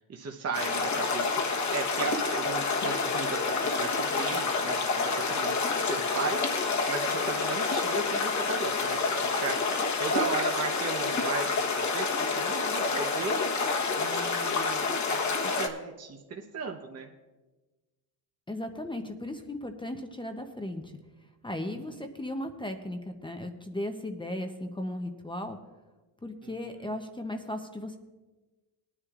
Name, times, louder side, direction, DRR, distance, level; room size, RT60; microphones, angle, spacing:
voice 1, 0.0-13.6 13.9-17.1 21.7-22.0 26.4-26.9, right 5 dB, 35° right, 2 dB, 0.9 m, -37 dB
sound 1, 0.5-15.7, left 4 dB, 40° left, 1.2 m, -28 dB
voice 2, 18.5-20.9 21.4-25.6 26.2-28.0, left 1 dB, 10° left, 5 dB, 0.7 m, -36 dB
19.5 x 9.8 x 2.4 m, 1.2 s
cardioid pair, 115°, 41 cm